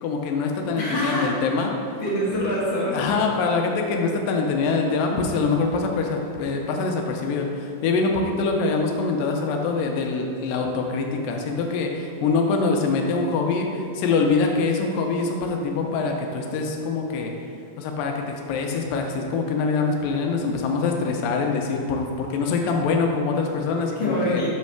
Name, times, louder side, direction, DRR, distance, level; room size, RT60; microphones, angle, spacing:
voice 1, 0.0-1.7 2.9-17.3 17.8-24.4, left 4 dB, 80° left, 2 dB, 2.2 m, -24 dB
voice 2, 0.8-1.3 2.0-3.0 5.1-5.2 24.0-24.5, equal, 65° left, -6 dB, 1.6 m, -25 dB
6.1 x 3.1 x 5.7 m, 2.4 s
omnidirectional pair, 4.0 m